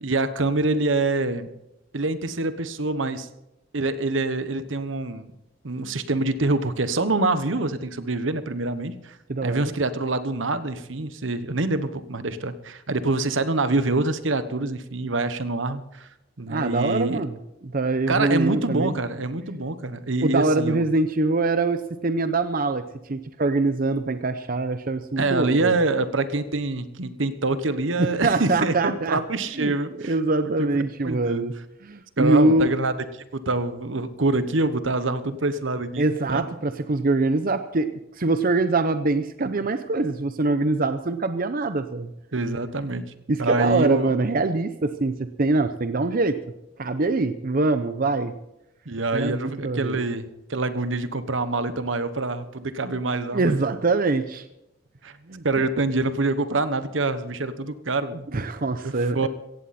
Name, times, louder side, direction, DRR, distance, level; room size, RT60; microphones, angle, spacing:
voice 1, 0.0-1.5 1.9-3.3 3.7-5.3 5.6-9.2 9.4-16.1 16.4-17.2 18.1-20.8 25.2-30.1 31.0-31.4 32.2-32.9 33.3-36.5 42.3-43.1 43.4-44.1 48.9-53.5 55.0-55.1 55.4-58.3 58.8-59.3, right 2 dB, 75° right, 12 dB, 1.2 m, -25 dB
voice 2, 9.3-9.7 16.5-17.4 17.6-18.9 20.2-22.8 23.1-25.8 28.0-29.2 29.5-29.7 30.0-31.5 31.8-32.7 36.0-37.9 38.2-42.1 43.3-46.4 46.8-48.3 49.1-50.0 53.3-54.4 55.3-55.7 58.3-59.3, right 3 dB, 45° right, 10 dB, 0.7 m, -23 dB
16.5 x 15.5 x 4.3 m, 0.88 s
head